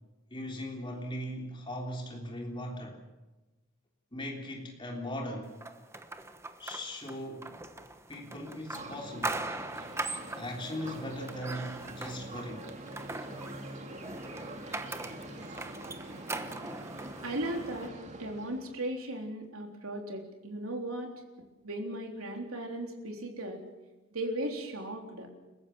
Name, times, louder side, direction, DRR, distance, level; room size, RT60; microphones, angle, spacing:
voice 1, 0.3-3.0 4.1-5.6 6.6-7.6 8.1-9.5 10.3-12.7, equal, 25° left, 0 dB, 3.5 m, -39 dB
sound 1, 5.6-17.9, right 2 dB, 10° right, 1.1 m, -41 dB
sound 2, 8.7-18.8, right 1 dB, 35° right, 2.4 m, -45 dB
voice 2, 17.2-21.1 21.6-23.6 24.1-25.3, right 1 dB, 85° right, 3 dB, 3.8 m, -37 dB
29.5 x 15.0 x 7.3 m, 1.1 s
head